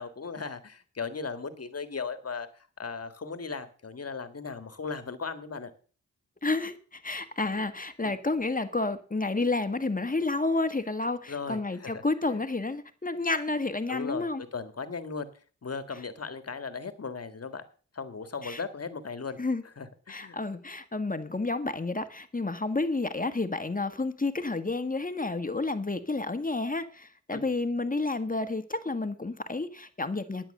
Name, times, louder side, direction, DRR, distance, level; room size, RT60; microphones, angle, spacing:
voice 1, 0.0-5.7 8.0-8.1 11.3-12.0 12.3-12.4 13.9-15.3 15.6-17.6 17.9-19.4 19.6-20.4 27.3-27.4, left 5 dB, 50° left, 1.8 m, -37 dB
voice 2, 6.4-14.4 18.4-18.6 19.4-19.6 20.1-30.5, left 3 dB, 25° left, 1.6 m, -30 dB
11.0 x 8.7 x 6.6 m
cardioid pair, 50°, 30 cm